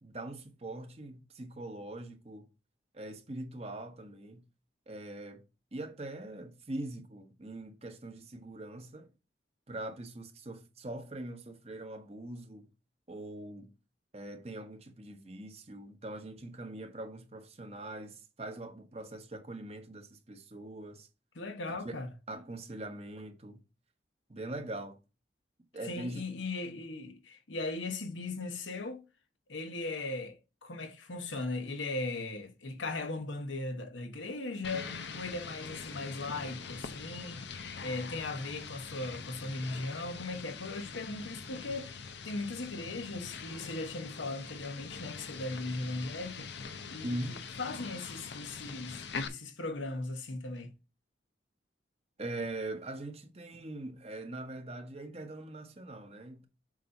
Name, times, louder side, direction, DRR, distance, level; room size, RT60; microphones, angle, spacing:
voice 1, 0.0-2.5 2.9-4.4 4.9-5.4 5.7-9.1 9.7-12.7 13.1-13.7 14.1-21.1 21.7-21.9 22.3-23.6 24.3-25.0 25.7-26.2 47.0-47.4 52.2-56.5, right 1 dB, 35° right, 1.1 m, -42 dB
voice 2, 21.3-22.1 25.8-29.1 29.5-37.5 37.8-47.2 47.6-50.7, left 2 dB, 85° left, 1.1 m, -38 dB
sound 1, 34.6-49.3, left 5 dB, 65° left, 0.7 m, -43 dB
7.5 x 2.8 x 5.3 m
head